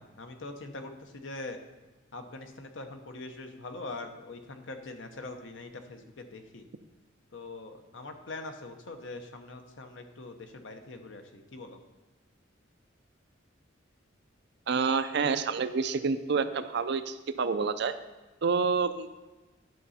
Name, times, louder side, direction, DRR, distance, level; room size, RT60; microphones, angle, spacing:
voice 1, 0.0-1.6 2.1-6.7 7.3-11.8, left 2 dB, 70° left, 6 dB, 0.9 m, -43 dB
voice 2, 14.7-18.0 18.4-19.2, right 5 dB, 60° right, 11 dB, 0.5 m, -28 dB
10.5 x 6.7 x 4.2 m, 1.2 s
head